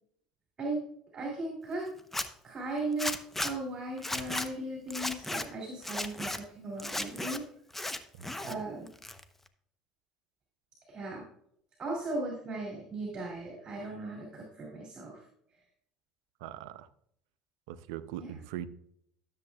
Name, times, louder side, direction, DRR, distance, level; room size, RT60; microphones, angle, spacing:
voice 1, 1.1-1.9 2.4-3.1 3.4-7.4 8.4-8.9 10.9-11.2 11.8-15.2 18.2-18.4, right 2 dB, 35° right, -1 dB, 2.7 m, -37 dB
Zipper (clothing), 2.0-2.3 3.0-3.5 4.0-4.5 4.9-5.4 5.8-6.4 6.8-7.4 7.7-8.5 8.9-9.5, left 1 dB, 10° left, 0.8 m, -35 dB
voice 2, 16.4-16.9 17.7-18.7, right 12 dB, 75° right, 14 dB, 0.5 m, -40 dB
13.0 x 7.2 x 2.3 m, 0.70 s
hypercardioid pair, 70°, 3 cm